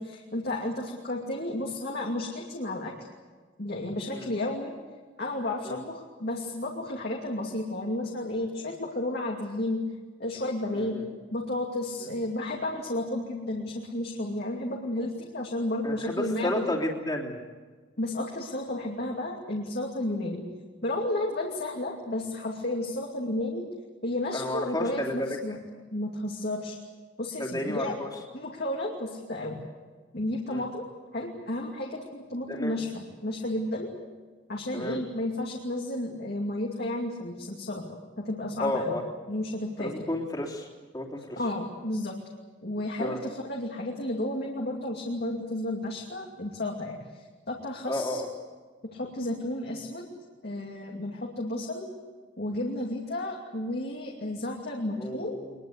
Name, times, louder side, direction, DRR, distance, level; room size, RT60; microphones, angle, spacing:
voice 1, 0.0-2.9 3.6-4.7 5.2-9.8 10.2-11.0 11.3-16.7 18.0-20.4 20.8-23.6 24.0-25.6 25.9-26.8 27.2-28.0 28.3-29.6 30.1-30.8 31.1-33.9 34.5-39.0 39.3-40.1 41.4-42.2 42.6-47.0 47.5-48.2 48.9-50.1 50.4-51.9 52.4-55.3, left 1 dB, 55° left, -1 dB, 2.6 m, -32 dB
voice 2, 15.8-17.4 24.3-25.4 27.4-28.1 30.5-30.6 32.5-32.8 34.7-35.0 38.6-39.0 39.8-40.7 40.9-41.4 43.0-43.2 47.9-48.3 55.0-55.5, left 1 dB, 20° left, -1 dB, 3.3 m, -32 dB
23.5 x 21.5 x 8.2 m, 1.4 s
head